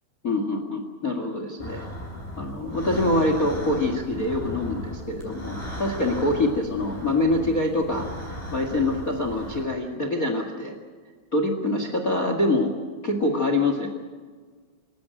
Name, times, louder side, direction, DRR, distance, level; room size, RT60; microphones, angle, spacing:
voice 1, 0.2-1.8 2.4-10.7 11.3-12.7 13.0-13.9, left 2 dB, 75° left, 6 dB, 0.7 m, -25 dB
sound 1, 1.6-9.6, equal, 5° left, 5.0 m, -36 dB
26.0 x 14.5 x 8.9 m, 1.5 s
omnidirectional pair, 5.2 m